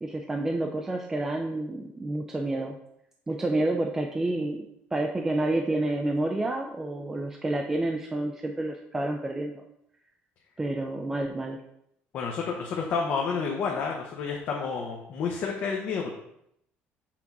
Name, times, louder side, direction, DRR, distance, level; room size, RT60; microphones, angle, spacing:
voice 1, 0.0-2.8 3.3-9.6 10.6-11.6, right 2 dB, 10° right, 3 dB, 0.4 m, -29 dB
voice 2, 12.1-16.1, left 5 dB, 45° left, 0 dB, 0.9 m, -30 dB
5.9 x 3.9 x 5.9 m, 0.76 s
cardioid pair, 175°, 4 cm